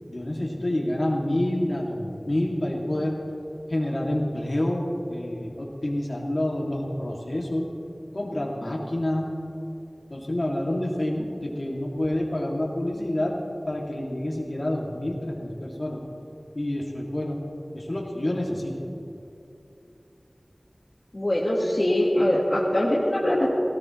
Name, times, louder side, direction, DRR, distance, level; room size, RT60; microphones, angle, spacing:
voice 1, 0.1-3.2 3.7-7.7 8.1-9.3 10.1-13.4 13.7-16.0 16.5-17.4 17.7-18.7, left 1 dB, 60° left, -2 dB, 2.8 m, -28 dB
voice 2, 21.1-23.5, left 1 dB, 45° left, -5 dB, 2.0 m, -22 dB
18.0 x 17.5 x 3.3 m, 2.8 s
wide cardioid pair, 50°, 0 cm